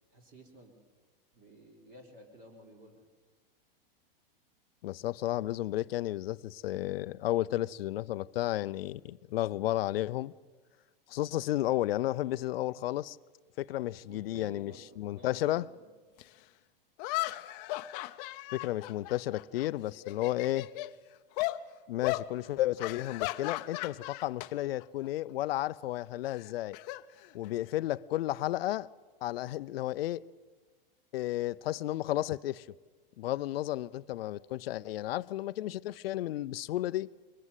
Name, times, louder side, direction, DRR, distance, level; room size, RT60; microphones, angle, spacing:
voice 1, 0.1-0.8 1.3-3.1 14.1-15.8, equal, 30° right, 3.6 m, -53 dB
voice 2, 4.8-10.3 11.1-13.2 13.6-15.7 18.5-20.7 21.9-26.8 27.3-28.9 29.2-30.2 31.1-32.7 33.2-37.1, left 15 dB, 80° left, 0.6 m, -32 dB
sound 1, 16.2-16.3 17.0-19.6 20.0-20.9 21.4-21.6 22.0-22.3 22.8-24.5 24.8-25.1 26.3-27.7, left 19 dB, 45° left, 0.8 m, -36 dB
22.5 x 19.5 x 8.3 m
supercardioid pair, 145°, 29 cm